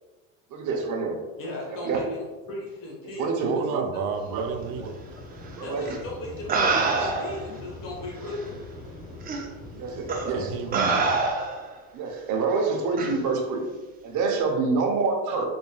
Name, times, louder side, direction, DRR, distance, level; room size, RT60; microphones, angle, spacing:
voice 1, 0.5-1.2 1.7-2.1 3.2-3.9 4.3-4.6 5.6-5.9 6.9-7.1 9.7-10.5 10.8-11.2 11.9-13.6 14.0-15.4, right 4 dB, 45° right, 2 dB, 0.8 m, -27 dB
voice 2, 1.4-3.4 4.2-4.3 5.6-8.6 9.7-10.0, left 2 dB, 50° left, -3 dB, 1.1 m, -37 dB
voice 3, 3.4-4.9 10.3-11.0, right 6 dB, 80° right, 7 dB, 0.6 m, -31 dB
sound 1, 4.3-11.3, left 2 dB, 20° left, 1.3 m, -42 dB
sound 2, 5.9-6.0 6.5-7.4 8.3-8.4 9.3-9.4 10.1-10.3 10.7-11.7 13.0-13.2, right 4 dB, 25° right, 0.4 m, -25 dB
3.8 x 3.5 x 2.2 m, 1.2 s
supercardioid pair, 105°, 42 cm